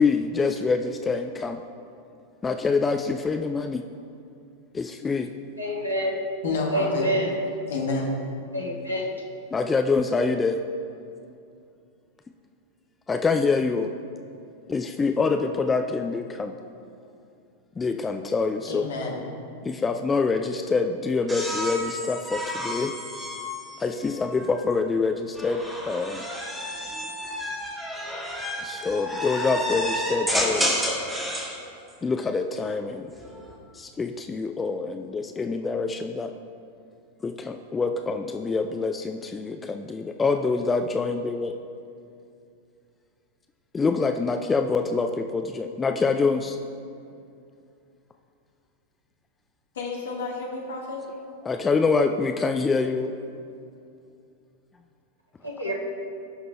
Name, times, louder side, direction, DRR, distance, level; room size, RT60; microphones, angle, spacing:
voice 1, 0.0-1.6 2.4-3.8 4.7-5.3 9.5-10.6 13.1-13.9 14.7-16.6 17.8-18.9 19.6-22.9 23.8-26.3 28.6-30.7 32.0-33.1 33.7-36.3 37.2-41.5 43.7-46.6 51.4-53.1, left 4 dB, 15° left, 6 dB, 0.3 m, -25 dB
voice 2, 5.6-6.1 6.7-7.3 8.5-9.1 55.6-55.7, equal, 90° left, -3 dB, 1.2 m, -26 dB
voice 3, 6.4-7.1 7.7-8.2 18.7-19.3 49.7-51.0 55.6-55.7, left 3 dB, 60° left, -1 dB, 1.5 m, -29 dB
sound 1, 21.3-24.6 25.4-31.6 33.0-33.6, equal, 10° right, 1.3 m, -30 dB
17.0 x 5.8 x 2.2 m, 2.5 s
figure-of-eight pair, 90°, 0 cm